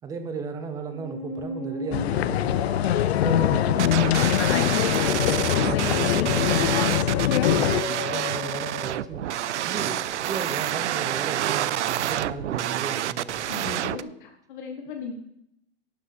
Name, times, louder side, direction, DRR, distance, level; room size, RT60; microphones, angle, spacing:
voice 1, 0.0-2.6 3.1-4.2 5.2-6.9 7.4-9.2 9.6-13.5, right 5 dB, 10° right, 7 dB, 0.7 m, -35 dB
Musical instrument, 0.8-9.6, left 6 dB, 25° left, 1.7 m, -34 dB
sound 1, 1.9-7.8, left 11 dB, 65° left, 0.6 m, -23 dB
sound 2, 3.8-14.0, right 12 dB, 85° right, 0.5 m, -28 dB
voice 2, 13.5-15.1, left 5 dB, 45° left, 3 dB, 1.4 m, -37 dB
11.5 x 6.1 x 5.7 m, 0.76 s
hypercardioid pair, 150°, 34 cm